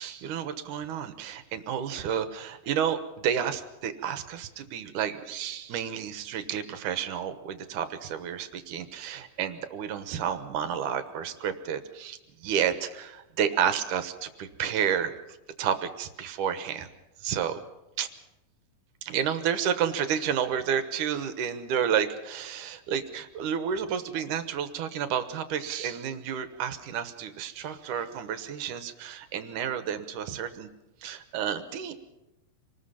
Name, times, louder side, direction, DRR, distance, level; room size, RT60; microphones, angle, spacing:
voice 1, 0.0-3.0 3.2-12.2 12.4-15.1 15.6-16.9 17.2-17.6 18.0-18.1 19.1-30.7 31.0-31.9, right 8 dB, 70° right, 10 dB, 2.5 m, -30 dB
26.5 x 19.5 x 5.8 m, 0.97 s
omnidirectional pair, 4.1 m